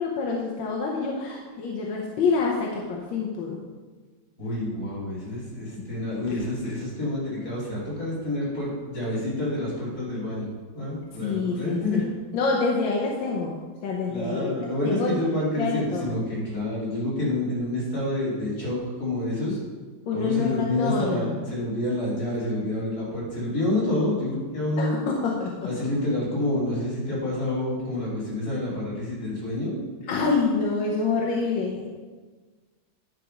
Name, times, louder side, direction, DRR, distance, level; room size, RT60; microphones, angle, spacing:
voice 1, 0.0-3.6 11.2-12.1 12.3-13.5 13.8-15.2 15.6-16.1 20.1-21.3 24.8-25.5 30.1-31.9, left 4 dB, 85° left, -1 dB, 1.7 m, -27 dB
voice 2, 4.4-10.5 10.8-12.0 14.1-19.6 20.1-24.9 25.6-29.8, left 1 dB, 55° left, -7 dB, 3.5 m, -28 dB
10.0 x 5.1 x 5.2 m, 1.4 s
omnidirectional pair, 2.0 m